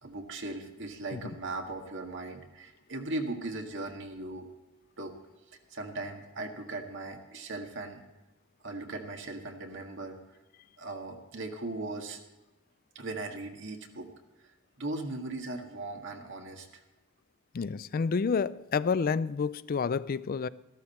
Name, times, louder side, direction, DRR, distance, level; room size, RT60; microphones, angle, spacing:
voice 1, 0.0-4.5 5.0-5.1 5.7-8.0 8.6-10.2 10.8-12.2 12.9-14.1 14.8-16.8, right 2 dB, 65° right, 1.8 m, -38 dB
voice 2, 17.5-20.5, left 5 dB, 45° left, 0.4 m, -29 dB
14.0 x 13.0 x 4.3 m
head